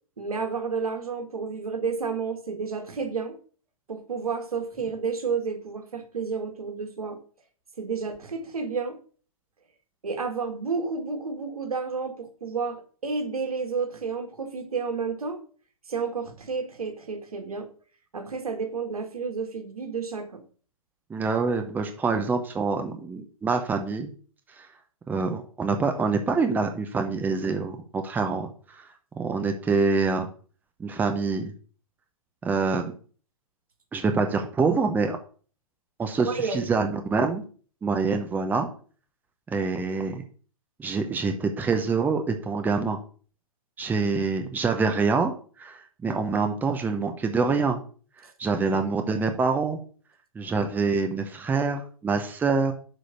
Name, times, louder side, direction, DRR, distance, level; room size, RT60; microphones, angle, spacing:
voice 1, 0.2-3.3 3.9-7.2 7.8-9.0 10.0-15.4 15.9-17.7 18.1-20.4 36.2-36.7, right 5 dB, 85° right, 6 dB, 1.9 m, -31 dB
voice 2, 21.1-24.1 25.1-28.8 29.2-30.3 30.8-31.5 32.4-32.9 33.9-35.2 36.0-37.4 37.8-38.7 39.5-40.2 40.8-43.0 43.8-45.3 45.6-47.8 48.4-49.8 50.3-52.7, right 4 dB, 10° right, 6 dB, 0.8 m, -25 dB
6.2 x 5.0 x 6.7 m, 0.42 s
hypercardioid pair, 130°, 18 cm